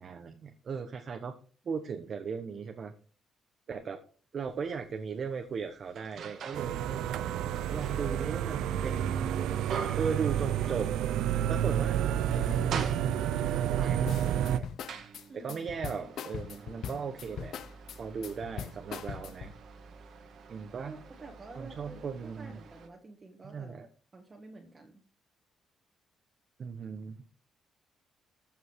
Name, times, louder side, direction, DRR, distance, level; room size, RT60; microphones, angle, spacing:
voice 1, 0.0-1.3 1.6-2.9 3.7-4.0 4.3-7.1 7.7-9.4 10.0-10.9 11.5-12.0 12.3-14.7 15.3-17.5 18.0-19.5 20.5-20.9 21.6-22.5 23.4-23.9 26.6-27.2, right 6 dB, 50° right, 5 dB, 1.2 m, -37 dB
sound 1, 4.5-4.6 5.2-6.8 7.2-11.3 11.6-11.7 12.1-13.6 14.3-22.9, right 6 dB, 65° right, 1.7 m, -44 dB
sound 2, 6.5-14.6, right 10 dB, 85° right, 0.6 m, -30 dB
voice 2, 7.9-8.6 9.4-9.6 15.3-16.1 20.8-25.0, right 3 dB, 30° right, 2 dB, 1.7 m, -49 dB
sound 3, 14.1-19.6, left 8 dB, 75° left, 0.7 m, -41 dB
14.5 x 5.5 x 4.8 m, 0.41 s
cardioid pair, 90°, 0 cm